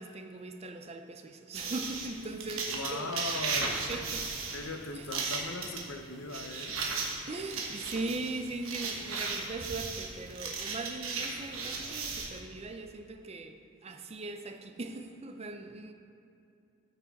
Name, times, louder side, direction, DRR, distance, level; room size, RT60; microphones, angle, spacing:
voice 1, 0.0-3.3 3.6-4.3 4.9-5.1 7.3-15.9, right 3 dB, 30° right, 6 dB, 0.5 m, -40 dB
sound 1, 1.5-12.4, right 4 dB, 70° right, 1.3 m, -36 dB
voice 2, 2.7-4.2 4.5-6.8, left 3 dB, 70° left, 6 dB, 0.8 m, -39 dB
13.0 x 6.0 x 4.1 m, 2.6 s
head